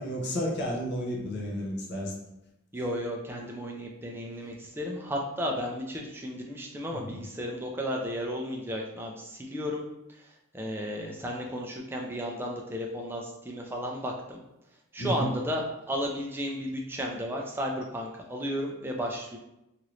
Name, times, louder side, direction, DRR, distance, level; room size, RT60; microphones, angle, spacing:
voice 1, 0.0-2.1 15.0-15.3, equal, 50° left, -1 dB, 0.5 m, -31 dB
voice 2, 2.7-9.8 10.1-14.4 14.9-19.4, equal, 10° right, 0 dB, 0.3 m, -34 dB
2.9 x 2.5 x 3.0 m, 0.89 s
head